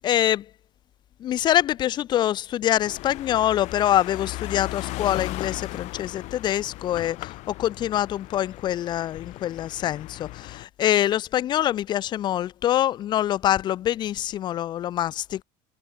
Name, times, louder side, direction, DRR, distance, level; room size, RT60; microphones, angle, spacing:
voice 1, 0.0-0.4 1.2-7.2 7.5-15.4, left 12 dB, 35° left, 0.5 m, -25 dB
sound 1, 2.8-10.6, left 19 dB, 60° left, 3.3 m, -37 dB
open air
cardioid pair, 160°, 13 cm